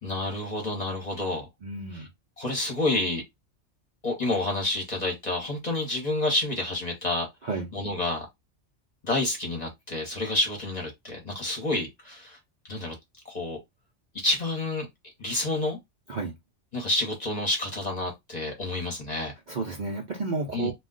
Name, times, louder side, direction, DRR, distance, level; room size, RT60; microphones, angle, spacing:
voice 1, 0.0-1.5 1.9-2.1 2.4-3.2 4.0-7.3 7.7-8.3 9.0-12.4 12.7-12.9 13.2-13.6 14.1-14.9 15.2-15.8 16.7-19.3 20.5-20.7, left 2 dB, 40° left, 0.9 m, -29 dB
voice 2, 1.6-2.1 7.4-7.7 16.1-16.3 19.5-20.7, right 3 dB, 50° right, 0.6 m, -31 dB
2.3 x 2.2 x 3.7 m
omnidirectional pair, 1.2 m